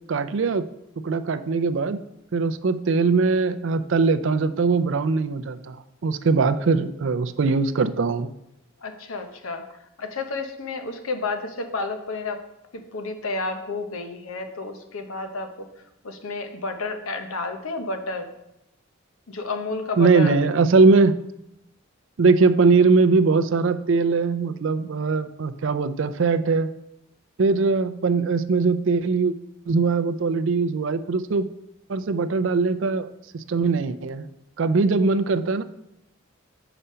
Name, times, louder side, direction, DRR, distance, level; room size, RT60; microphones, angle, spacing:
voice 1, 0.1-0.7 1.0-2.0 2.3-8.3 20.0-21.2 22.2-26.7 27.4-29.3 29.7-31.5 31.9-33.1 33.3-34.3 34.6-35.6, right 4 dB, 60° right, 11 dB, 0.4 m, -21 dB
voice 2, 8.8-9.7 10.0-12.4 12.9-15.7 16.0-18.3 19.3-20.4, left 3 dB, 80° left, 7 dB, 0.9 m, -31 dB
6.8 x 5.0 x 5.5 m, 0.86 s
head